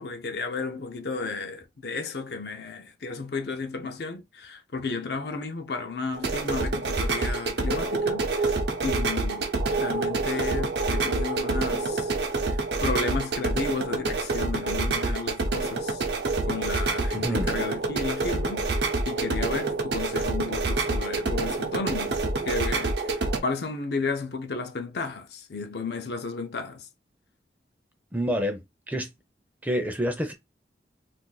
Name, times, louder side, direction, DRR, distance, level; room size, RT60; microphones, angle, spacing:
voice 1, 0.0-12.1 12.5-16.0 16.5-18.7 19.1-22.2 22.4-23.0 23.4-26.9, left 4 dB, 70° left, 0.6 m, -33 dB
sound 1, 6.1-23.4, right 3 dB, 75° right, 0.7 m, -27 dB
voice 2, 17.1-17.5 28.1-29.1 29.6-30.3, equal, 10° right, 0.5 m, -28 dB
2.5 x 2.5 x 3.9 m
head